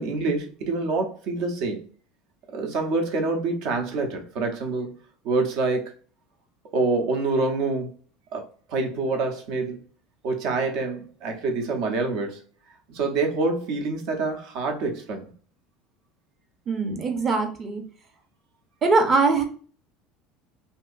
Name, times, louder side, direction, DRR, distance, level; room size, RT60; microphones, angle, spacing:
voice 1, 0.0-1.9 2.5-4.9 5.2-5.9 6.7-7.9 8.3-9.8 10.2-12.4 12.9-15.3, right 3 dB, 65° right, 0.8 m, -26 dB
voice 2, 16.7-17.8 18.8-19.4, right 3 dB, 30° right, 0.7 m, -22 dB
2.8 x 2.7 x 2.5 m
supercardioid pair, 130°, 0 cm